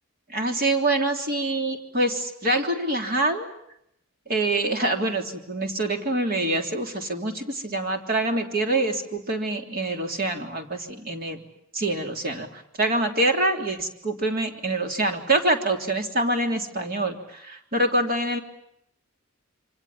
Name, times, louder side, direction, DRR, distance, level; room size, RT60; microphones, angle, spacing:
voice 1, 0.3-3.5 4.3-11.4 11.7-18.4, right 2 dB, 45° right, 3 dB, 3.3 m, -25 dB
28.0 x 25.5 x 7.3 m, 0.77 s
head